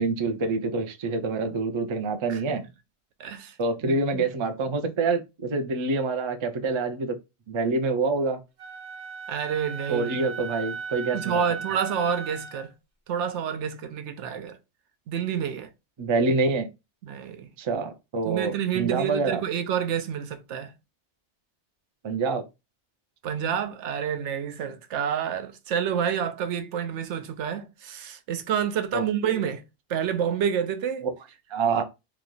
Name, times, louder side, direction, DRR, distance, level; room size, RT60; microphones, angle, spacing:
voice 1, 0.0-2.6 3.6-7.2 7.5-8.4 9.9-11.3 16.0-16.7 17.6-19.4 22.0-22.4 28.9-29.4 31.5-31.8, right 3 dB, 50° right, 0.3 m, -26 dB
voice 2, 2.3-2.6 3.2-3.5 3.8-4.3 9.3-10.3 11.1-12.7 13.1-14.6 15.1-15.7 17.0-17.5 18.2-20.7 23.2-29.6 29.9-31.1, right 8 dB, 80° right, 0.9 m, -29 dB
Wind instrument woodwind instrument, 8.6-12.7, right 6 dB, 35° right, 0.8 m, -37 dB
3.0 x 2.3 x 3.8 m
omnidirectional pair, 1.2 m